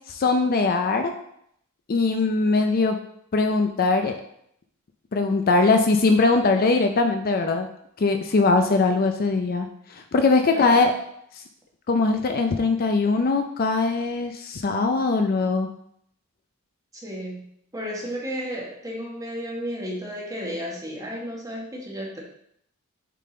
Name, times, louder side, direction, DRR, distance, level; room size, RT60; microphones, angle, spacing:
voice 1, 0.1-1.1 1.9-3.0 3.3-4.2 5.1-7.7 8.0-10.9 11.9-15.7, left 3 dB, 45° left, 6 dB, 0.4 m, -21 dB
voice 2, 10.5-10.9 16.9-17.5 17.7-22.2, equal, 15° right, -3 dB, 1.3 m, -33 dB
6.6 x 3.8 x 3.8 m, 0.70 s
head